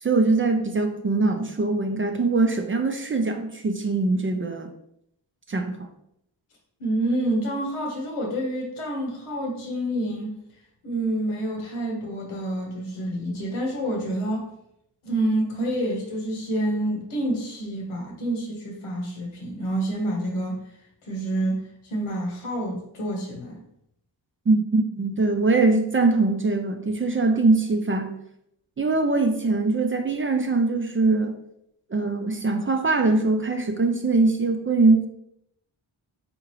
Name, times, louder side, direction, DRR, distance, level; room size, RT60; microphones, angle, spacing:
voice 1, 0.0-4.7 5.5-5.9 24.5-28.1 28.8-31.4 31.9-35.1, right 3 dB, 25° right, 5 dB, 0.4 m, -22 dB
voice 2, 6.8-10.3 10.8-14.5 15.0-20.7 21.0-23.6, right 1 dB, 85° left, 0 dB, 1.1 m, -28 dB
3.7 x 2.8 x 3.0 m, 0.77 s
cardioid pair, 50°, 49 cm